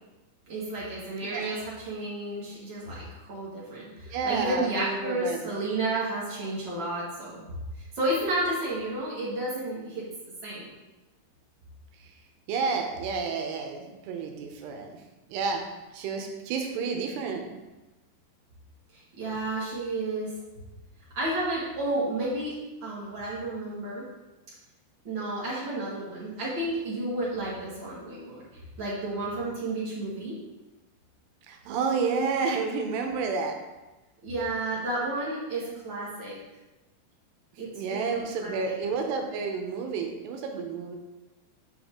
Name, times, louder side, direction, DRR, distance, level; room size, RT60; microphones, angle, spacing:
voice 1, 0.5-7.4 7.9-10.1 10.4-10.7 19.2-20.3 21.1-22.5 22.8-24.0 25.0-28.4 28.8-30.3 34.2-36.4 37.6-38.8, right 2 dB, 45° right, -8 dB, 1.6 m, -31 dB
voice 2, 4.1-5.5 12.5-15.0 15.3-15.6 15.9-17.6 31.5-33.6 37.7-41.0, right 5 dB, 85° right, 3 dB, 2.9 m, -30 dB
8.5 x 5.4 x 3.7 m, 1.1 s
omnidirectional pair, 4.9 m